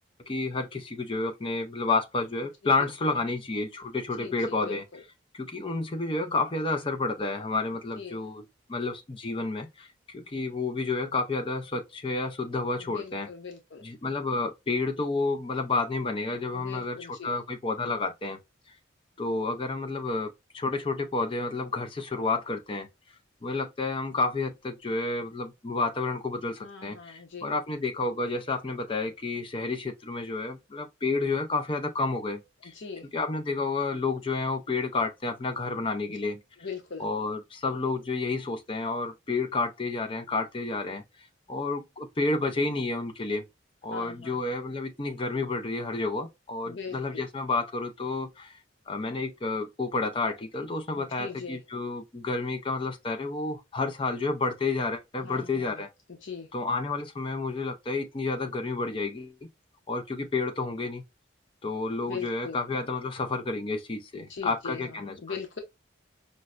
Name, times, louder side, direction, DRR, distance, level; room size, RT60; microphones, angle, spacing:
voice 1, 0.3-4.8 5.3-8.4 8.7-9.9 10.1-13.3 13.8-18.4 19.2-22.9 23.4-32.7 33.1-36.4 37.0-41.0 41.5-43.4 43.8-48.6 48.9-55.9 56.5-59.3 59.9-61.0 61.6-65.4, left 3 dB, 25° left, 0.4 m, -30 dB
voice 2, 4.2-5.0 7.9-8.2 12.7-13.8 16.5-17.3 26.6-27.5 32.6-33.1 36.6-37.1 43.9-44.4 46.7-47.2 50.9-51.6 55.2-55.8 56.2-56.5 62.1-62.6 64.3-65.6, left 5 dB, 75° left, 0.7 m, -41 dB
5.2 x 2.1 x 2.3 m
head